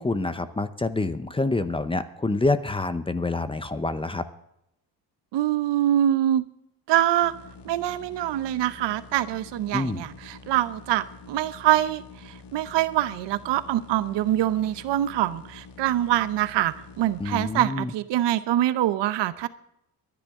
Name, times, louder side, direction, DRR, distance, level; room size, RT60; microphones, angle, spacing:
voice 1, 0.0-4.2 9.7-10.0 17.2-17.9, left 2 dB, 15° left, 12 dB, 0.7 m, -27 dB
voice 2, 5.3-6.4 6.9-7.3 7.6-19.5, right 12 dB, 85° right, 14 dB, 0.9 m, -24 dB
sound 1, 7.2-17.6, left 4 dB, 70° left, 1.7 m, -47 dB
23.5 x 10.5 x 3.7 m, 0.81 s
cardioid pair, 130°, 42 cm